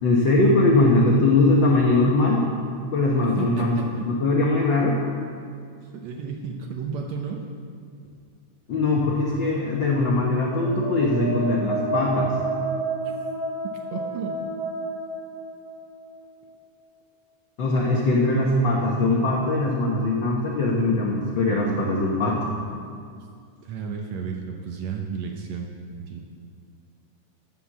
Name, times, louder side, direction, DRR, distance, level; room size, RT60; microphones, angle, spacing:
voice 1, 0.0-2.5 2.9-3.8 4.1-5.0 8.7-12.3 17.6-22.5, left 2 dB, 90° left, -3 dB, 1.0 m, -21 dB
voice 2, 3.4-4.1 5.9-7.5 13.9-14.4 23.6-25.7 26.0-26.2, right 6 dB, 70° right, 2 dB, 1.7 m, -32 dB
sound 1, 10.4-16.2, right 2 dB, 35° right, 0.6 m, -30 dB
13.0 x 5.8 x 7.4 m, 2.3 s
omnidirectional pair, 3.8 m